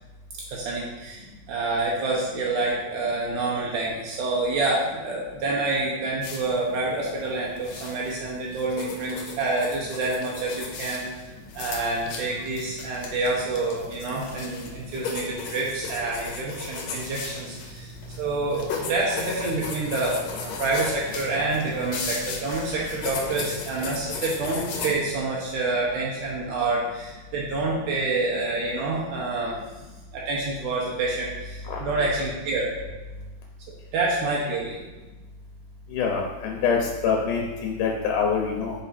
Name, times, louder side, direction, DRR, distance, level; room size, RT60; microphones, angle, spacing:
voice 1, 0.5-11.0 11.6-29.5 30.1-32.7 33.9-34.8, right 2 dB, 80° right, -4 dB, 2.3 m, -27 dB
sound 1, 6.2-24.9, left 4 dB, 70° left, 1.9 m, -36 dB
voice 2, 35.9-38.7, left 5 dB, 85° left, 0 dB, 2.3 m, -25 dB
5.7 x 4.9 x 4.2 m, 1.2 s
omnidirectional pair, 3.6 m